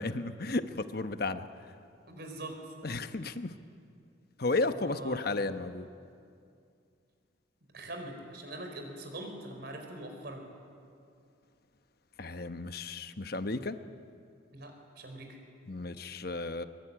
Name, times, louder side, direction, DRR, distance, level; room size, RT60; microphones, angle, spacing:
voice 1, 0.0-1.5 2.8-3.5 4.4-5.9 12.2-13.8 15.7-16.6, left 2 dB, 50° left, 10 dB, 1.0 m, -33 dB
voice 2, 2.1-2.7 4.7-5.3 7.7-10.4 14.5-15.4, right 1 dB, 50° right, 4 dB, 4.6 m, -43 dB
23.0 x 22.5 x 9.9 m, 2.4 s
head